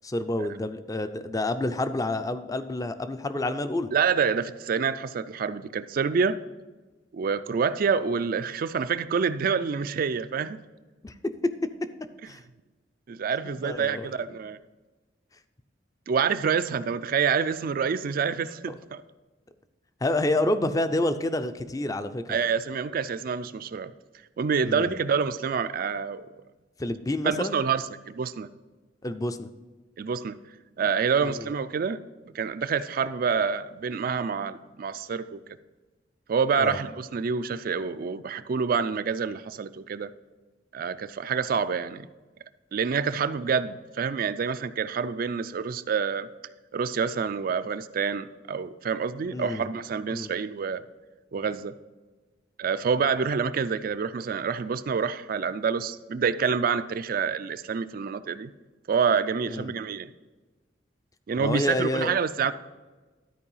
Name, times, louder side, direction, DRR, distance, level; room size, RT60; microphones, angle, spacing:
voice 1, 0.0-3.9 11.0-11.1 12.3-12.4 13.6-14.1 20.0-22.4 24.6-25.0 26.8-27.6 29.0-29.5 31.2-31.5 36.6-36.8 49.3-49.7 50.1-50.3 59.5-59.7 61.4-62.2, left 1 dB, 20° left, 11 dB, 0.5 m, -28 dB
voice 2, 3.9-6.4 7.1-10.6 13.1-14.6 16.1-19.0 22.3-23.9 24.4-26.2 27.2-28.5 30.0-30.4 30.8-32.0 32.3-35.4 36.3-40.1 40.7-42.1 42.7-46.3 46.7-50.8 51.3-51.7 52.6-58.5 58.9-60.1 61.3-62.5, right 6 dB, 50° right, 12 dB, 0.4 m, -27 dB
12.5 x 4.6 x 5.5 m, 1.3 s
head